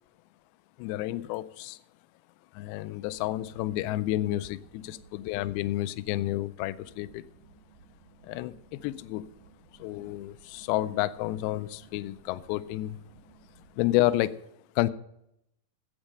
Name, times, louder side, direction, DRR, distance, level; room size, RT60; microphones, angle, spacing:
voice 1, 0.8-1.8 2.5-7.2 8.2-9.3 9.8-13.0 13.8-14.3 14.8-14.9, left 15 dB, 85° left, 16 dB, 2.4 m, -30 dB
sound 1, 3.0-14.0, right 5 dB, 70° right, 2.7 m, -57 dB
8.8 x 8.1 x 6.5 m, 0.78 s
omnidirectional pair, 4.5 m